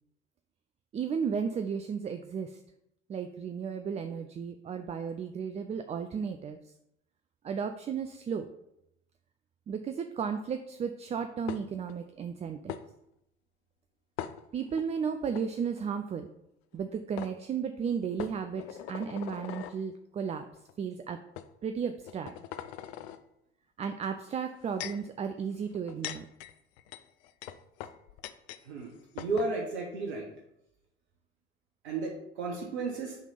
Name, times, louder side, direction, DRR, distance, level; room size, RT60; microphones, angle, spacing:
voice 1, 0.9-2.5 3.1-6.6 7.4-8.5 9.7-12.8 14.5-16.3 16.7-20.4 20.8-21.2 21.6-22.3 23.8-26.2, right 6 dB, 20° right, 8 dB, 0.4 m, -34 dB
sound 1, 11.5-12.0 12.7-12.8 14.2-14.8 15.3-15.4 16.7-16.8 17.2-17.3 18.2-19.8 20.6-20.7 21.4-21.5 22.0-23.2 24.3-25.1 25.7-28.6 28.9-29.0 29.2-29.5, left 11 dB, 65° left, 0.5 m, -41 dB
voice 2, 29.1-30.2 31.8-33.2, right 3 dB, 75° right, -1 dB, 1.1 m, -33 dB
6.3 x 3.3 x 5.4 m, 0.81 s
figure-of-eight pair, 65°, 33 cm